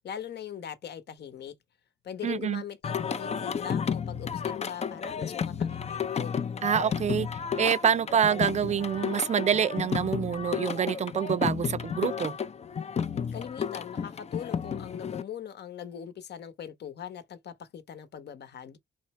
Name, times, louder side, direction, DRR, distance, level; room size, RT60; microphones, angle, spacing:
voice 1, 0.0-1.5 2.0-6.4 13.3-18.8, left 9 dB, 55° left, 1.0 m, -41 dB
voice 2, 2.2-2.6 6.6-7.3 7.6-12.4, right 8 dB, 35° right, 0.4 m, -26 dB
Singing, 2.8-15.2, left 7 dB, 35° left, 0.5 m, -32 dB
4.2 x 3.1 x 3.1 m
cardioid pair, 90°, 20 cm